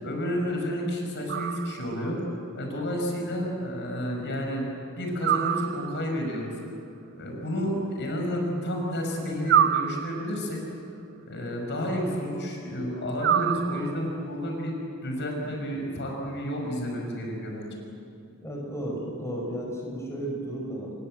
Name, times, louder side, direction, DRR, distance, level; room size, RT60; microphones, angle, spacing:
voice 1, 0.0-2.2 2.5-4.6 5.0-6.5 7.1-10.6 11.3-14.7 15.0-17.8, equal, 55° left, 1 dB, 6.2 m, -30 dB
sound 1, 1.3-2.1 5.2-6.2 9.5-10.5 13.2-14.2, right 9 dB, 50° right, 0.6 m, -26 dB
voice 2, 18.4-20.9, right 1 dB, 15° left, -1 dB, 5.2 m, -33 dB
29.0 x 23.5 x 7.8 m, 2.7 s
head